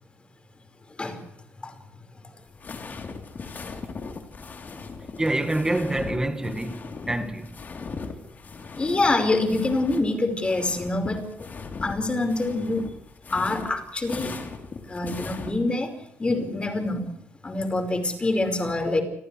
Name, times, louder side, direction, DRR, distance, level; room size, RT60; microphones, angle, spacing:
sound 1, 2.4-10.1 10.3-15.5, left 4 dB, 40° left, 3.7 m, -38 dB
voice 1, 5.2-7.6, right 1 dB, 15° right, 1.9 m, -27 dB
voice 2, 8.8-11.3 11.8-12.9 13.3-14.3 14.9-15.9 16.2-17.0 17.4-19.0, left 2 dB, 25° left, 5.1 m, -25 dB
30.0 x 26.0 x 3.4 m
cardioid pair, 120°, 5 cm